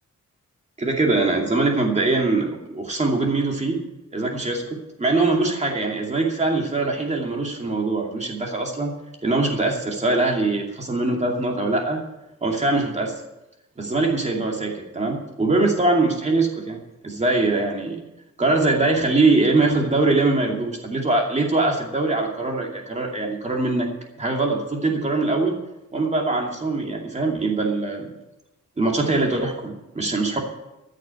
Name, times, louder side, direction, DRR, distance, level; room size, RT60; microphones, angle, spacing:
voice 1, 0.8-3.8 4.1-4.6 5.0-8.9 9.2-12.0 12.4-13.2 13.8-18.0 18.4-23.9 24.2-25.5 25.9-28.1 28.8-30.4, right 2 dB, 25° right, 0 dB, 2.5 m, -22 dB
14.5 x 6.6 x 8.8 m, 0.95 s
wide cardioid pair, 165°, 30 cm